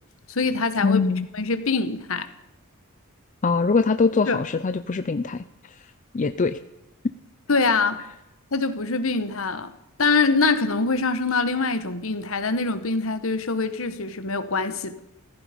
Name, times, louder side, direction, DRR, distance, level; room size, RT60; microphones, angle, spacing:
voice 1, 0.3-1.0 1.3-2.3 4.3-4.4 7.5-8.0 8.5-9.7 10.0-15.0, left 4 dB, 70° left, 1.2 m, -24 dB
voice 2, 0.8-1.3 3.4-5.4 6.1-6.6, left 4 dB, 35° left, 0.5 m, -22 dB
15.0 x 15.0 x 5.2 m
head